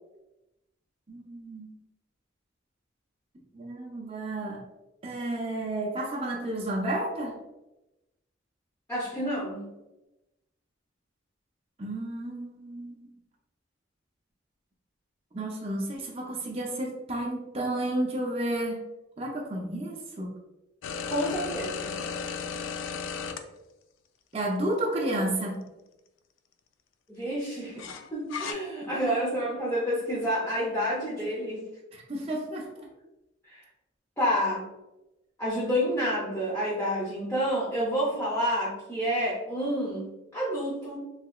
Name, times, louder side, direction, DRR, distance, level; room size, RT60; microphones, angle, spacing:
voice 1, 1.1-1.7 3.5-4.6 5.0-7.3 11.8-13.1 15.3-18.8 19.2-20.3 24.3-25.6 31.9-32.9, right 1 dB, 30° right, -2 dB, 0.5 m, -31 dB
voice 2, 8.9-9.7 21.1-22.0 27.1-27.8 28.1-31.6 33.5-33.6 34.2-34.7 35.4-41.0, equal, 15° left, -9 dB, 0.7 m, -29 dB
sound 1, 20.8-23.4 24.4-24.5 27.8-28.5, left 5 dB, 85° left, 0.3 m, -34 dB
3.3 x 2.8 x 2.4 m, 0.96 s
head